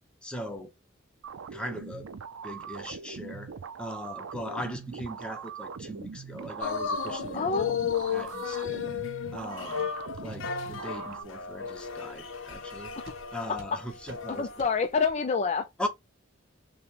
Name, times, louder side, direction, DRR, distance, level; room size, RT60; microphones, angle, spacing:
voice 1, 0.2-0.7 1.5-2.1 2.4-7.7 8.1-8.8 9.3-9.9 10.2-13.0 13.3-14.5 15.8-15.9, equal, 5° left, 0.8 m, -39 dB
sound 1, 1.2-11.2, right 6 dB, 80° right, 0.4 m, -41 dB
sound 2, 6.4-6.5 6.9-7.1 7.5-7.7 8.1-8.2 8.6-8.7 9.1-9.3 9.8-9.9 10.3-10.4 10.9-11.0 11.4-11.6 12.0-12.1 12.5-12.6 13.0-13.2 13.5-13.7 14.0-14.2 14.6-14.7, right 2 dB, 65° right, 1.2 m, -53 dB
sound 3, 6.6-14.7 15.1-15.2, left 7 dB, 70° left, 0.7 m, -34 dB
voice 2, 7.3-7.8 13.0-13.1 13.5-13.8 14.3-15.7, left 5 dB, 35° left, 0.4 m, -28 dB
5.7 x 2.2 x 3.3 m
head